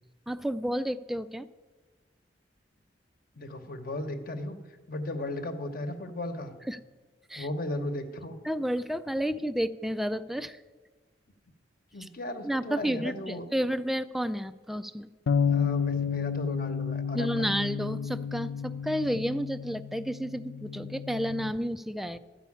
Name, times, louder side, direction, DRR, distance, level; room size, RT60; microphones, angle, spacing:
voice 1, 0.3-1.5 6.7-6.8 7.3-7.5 8.4-10.6 12.0-12.1 12.4-15.1 17.1-22.2, equal, ahead, 11 dB, 0.3 m, -31 dB
voice 2, 3.3-4.6 4.9-6.5 7.4-8.4 11.9-13.4 15.5-17.5, left 1 dB, 55° left, 8 dB, 1.0 m, -35 dB
sound 1, 15.3-21.5, left 7 dB, 85° left, 0.4 m, -31 dB
13.0 x 5.6 x 8.5 m, 1.3 s
head